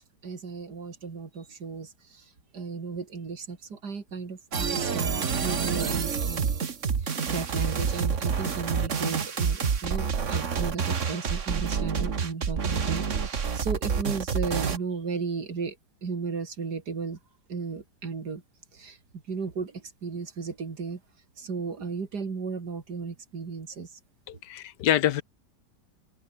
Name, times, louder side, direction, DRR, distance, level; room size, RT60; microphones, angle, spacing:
voice 1, 0.2-6.5 7.0-15.8 16.0-17.2 17.5-18.4 18.7-19.0 19.3-21.0 21.4-24.0, right 5 dB, 65° right, 3.1 m, -35 dB
sound 1, 4.5-14.8, right 6 dB, 45° right, 1.7 m, -28 dB
voice 2, 24.3-25.2, left 12 dB, 70° left, 1.3 m, -25 dB
open air
omnidirectional pair, 1.9 m